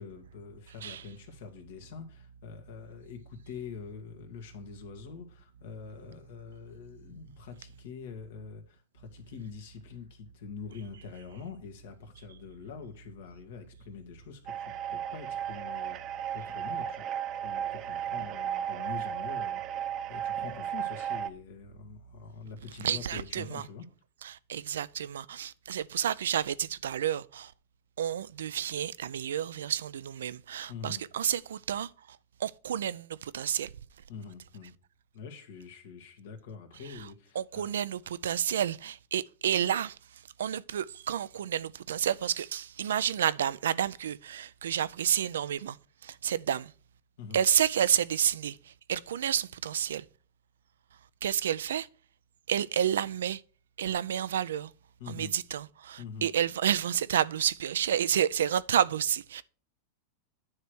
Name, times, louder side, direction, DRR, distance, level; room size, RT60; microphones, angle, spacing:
voice 1, 0.0-17.0 17.3-23.9 30.7-31.0 34.1-34.7 35.1-37.7 47.2-47.4 55.0-55.3 56.0-56.3, left 6 dB, 70° left, 1.8 m, -45 dB
sound 1, 14.5-21.3, right 10 dB, 35° right, 0.7 m, -35 dB
voice 2, 22.8-23.7 24.2-27.5 28.0-33.7 36.9-37.1 37.4-45.8 46.0-46.7 47.3-50.1 51.2-51.9 52.5-53.4 53.8-54.7 55.1-59.4, right 9 dB, 90° right, 0.4 m, -30 dB
9.5 x 3.3 x 6.2 m
supercardioid pair, 130°, 0 cm